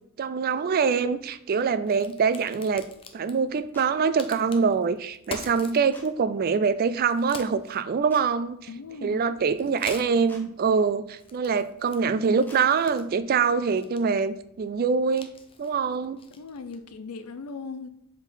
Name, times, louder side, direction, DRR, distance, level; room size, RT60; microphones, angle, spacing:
voice 1, 0.2-2.8 3.1-8.6 9.0-15.3 15.6-16.2, right 5 dB, 40° right, 13 dB, 0.3 m, -24 dB
Crack, 0.9-16.9, left 3 dB, 25° left, 0.6 m, -47 dB
sound 1, 3.7-3.9 5.9-6.1 8.1-8.3 10.3-10.4 12.5-12.6, left 1 dB, 10° left, 0.9 m, -47 dB
voice 2, 8.7-9.3 16.3-17.9, left 4 dB, 90° left, 9 dB, 0.5 m, -38 dB
7.2 x 3.7 x 3.8 m, 0.78 s
head